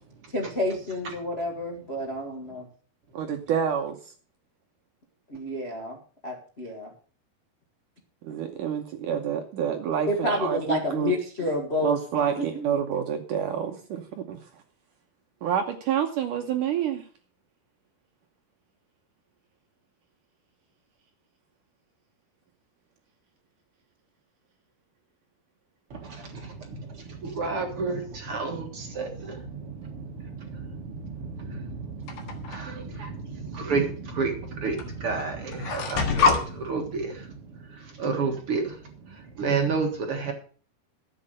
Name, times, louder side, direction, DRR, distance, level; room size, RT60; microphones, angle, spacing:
voice 1, 0.3-2.6 5.3-6.0 6.2-6.9 10.1-11.9 12.4-12.7, left 1 dB, 55° left, 0 dB, 0.7 m, -29 dB
voice 2, 3.1-4.0 8.2-11.1 11.8-14.4 15.4-17.0, right 8 dB, 70° right, 4 dB, 2.1 m, -28 dB
voice 3, 27.4-28.0 28.3-28.6 29.0-29.1 33.7-33.8 34.2-34.3 34.6-34.7 35.0-35.3 35.7-36.3 36.7-37.1 38.0-38.6 39.4-40.3, right 4 dB, 50° right, 3 dB, 1.7 m, -27 dB
sound 1, 32.1-32.6 33.7-33.8 34.8-34.9 35.1-36.4, left 5 dB, 70° left, 3.6 m, -24 dB
13.0 x 7.9 x 6.5 m, 0.42 s
omnidirectional pair, 4.8 m